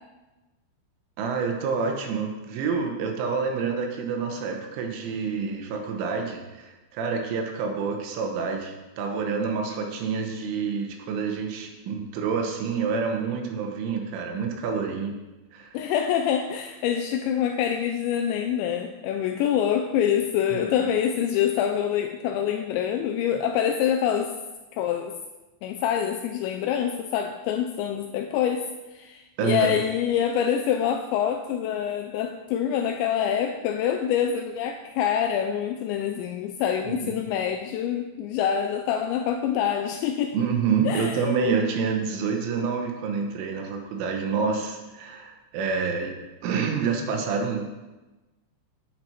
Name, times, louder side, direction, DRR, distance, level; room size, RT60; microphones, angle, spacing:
voice 1, 1.2-15.2 15.5-15.8 20.5-20.6 29.4-29.8 36.8-36.9 40.3-46.2 46.4-47.7, right 5 dB, 80° right, 3 dB, 3.4 m, -28 dB
voice 2, 15.7-24.3 24.7-25.1 25.6-40.4 40.9-41.5, left 9 dB, 90° left, 5 dB, 2.5 m, -26 dB
9.4 x 9.1 x 4.3 m, 1.1 s
omnidirectional pair, 5.7 m